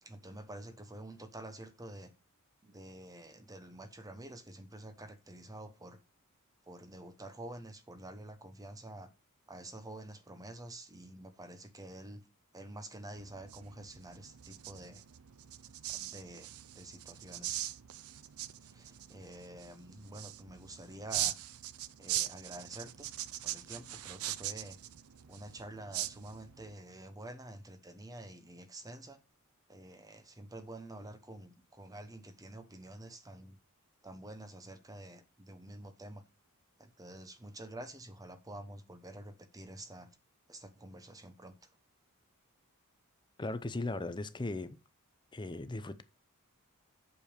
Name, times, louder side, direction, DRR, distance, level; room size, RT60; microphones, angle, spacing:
voice 1, 0.0-2.1 2.6-6.0 6.7-9.1 9.5-12.2 12.5-15.0 15.9-16.5 16.7-17.7 18.7-21.4 22.0-23.1 23.4-24.8 25.3-29.2 29.7-33.6 34.0-36.2 36.8-40.1 40.5-41.7, right 1 dB, 15° right, 1.0 m, -48 dB
sound 1, 13.1-26.7, right 13 dB, 70° right, 0.5 m, -41 dB
voice 2, 43.4-44.8 45.3-46.0, left 2 dB, 20° left, 0.6 m, -37 dB
8.3 x 6.9 x 5.0 m
head